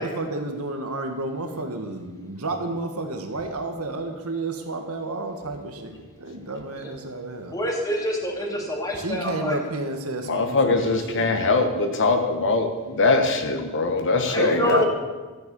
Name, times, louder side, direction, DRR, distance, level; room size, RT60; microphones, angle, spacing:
voice 1, 0.0-5.9 6.2-7.6 9.0-11.3 14.3-14.8, right 2 dB, 80° right, 5 dB, 1.7 m, -31 dB
voice 2, 7.5-9.6 14.3-14.9, equal, 15° left, 0 dB, 2.6 m, -26 dB
voice 3, 10.2-14.8, left 3 dB, 60° left, 5 dB, 1.2 m, -22 dB
14.5 x 9.3 x 7.0 m, 1.3 s
head